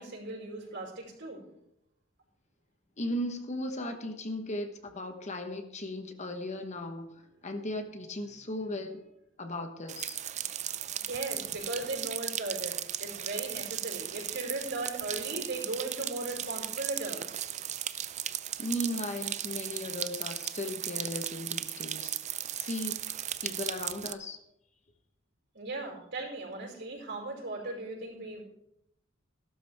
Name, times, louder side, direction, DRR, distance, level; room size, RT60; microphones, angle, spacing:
voice 1, 0.0-1.4 11.0-17.4 25.5-28.4, right 2 dB, 60° right, -1 dB, 5.2 m, -37 dB
voice 2, 3.0-9.0 9.4-10.2 18.6-22.2 22.6-24.4, left 1 dB, 35° left, 6 dB, 1.2 m, -37 dB
sound 1, 9.9-24.1, right 11 dB, 35° right, 0.5 m, -36 dB
16.5 x 12.5 x 3.5 m, 0.80 s
head